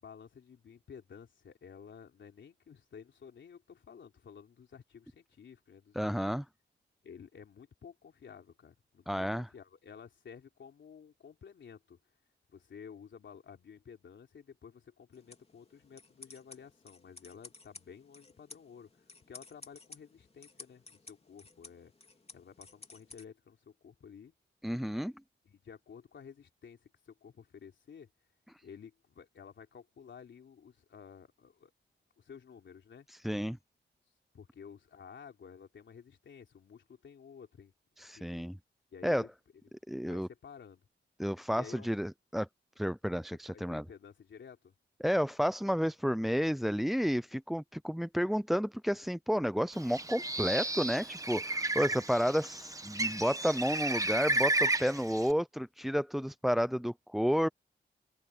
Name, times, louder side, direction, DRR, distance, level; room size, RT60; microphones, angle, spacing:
voice 1, 0.0-6.4 7.0-12.0 12.5-21.9 22.3-24.3 25.5-28.1 28.6-31.7 32.2-33.1 34.3-37.7 38.1-38.3 38.9-39.3 40.1-40.9 41.5-41.9 43.3-44.7, left 7 dB, 75° left, 3.5 m, -52 dB
voice 2, 5.9-6.4 9.1-9.5 24.6-25.1 28.5-28.6 33.1-33.6 38.0-38.6 39.0-39.3 39.9-40.3 41.2-42.5 42.8-43.8 45.0-57.5, equal, ahead, 0.4 m, -31 dB
sound 1, 15.1-23.2, left 3 dB, 30° left, 3.0 m, -55 dB
Bird, 49.8-55.3, right 2 dB, 15° right, 1.3 m, -33 dB
open air
wide cardioid pair, 100°, 19 cm